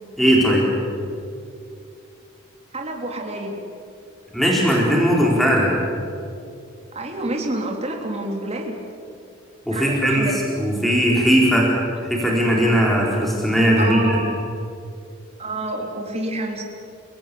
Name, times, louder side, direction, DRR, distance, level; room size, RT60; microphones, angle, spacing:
voice 1, 0.2-0.7 4.3-5.7 9.7-10.2 10.6-11.7 12.0-14.2, equal, ahead, -3 dB, 4.4 m, -18 dB
voice 2, 2.7-3.6 6.9-8.8 9.7-10.4 13.8-14.4 15.4-16.6, right 2 dB, 30° right, 1 dB, 3.4 m, -28 dB
29.0 x 18.0 x 8.7 m, 2.5 s
head